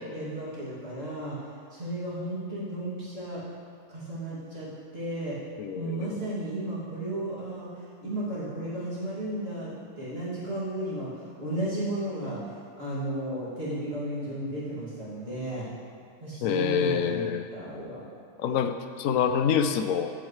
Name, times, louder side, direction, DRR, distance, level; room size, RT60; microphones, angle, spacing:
voice 1, 0.1-1.4 1.7-3.4 3.9-5.4 5.8-7.7 8.0-12.4 12.8-15.7 16.2-18.0, right 1 dB, 35° right, -9 dB, 2.8 m, -34 dB
voice 2, 5.6-6.1 16.4-17.5 18.4-20.1, left 7 dB, 70° left, 9 dB, 0.8 m, -26 dB
13.5 x 8.0 x 3.2 m, 2.2 s
omnidirectional pair, 1.8 m